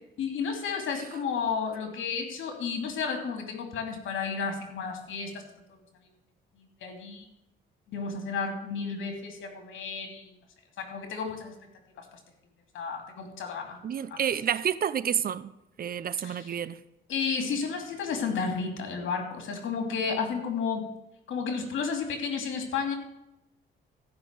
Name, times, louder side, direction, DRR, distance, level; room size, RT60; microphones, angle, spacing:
voice 1, 0.2-5.4 6.8-7.3 7.9-10.3 10.8-11.5 12.0-12.1 12.7-13.8 14.1-14.2 16.2-16.5 17.1-20.9 21.3-23.0, left 5 dB, 75° left, 3.0 m, -32 dB
voice 2, 13.8-15.5 15.8-16.8, right 8 dB, 50° right, 0.8 m, -29 dB
14.5 x 6.1 x 7.6 m
cardioid pair, 90°, 20 cm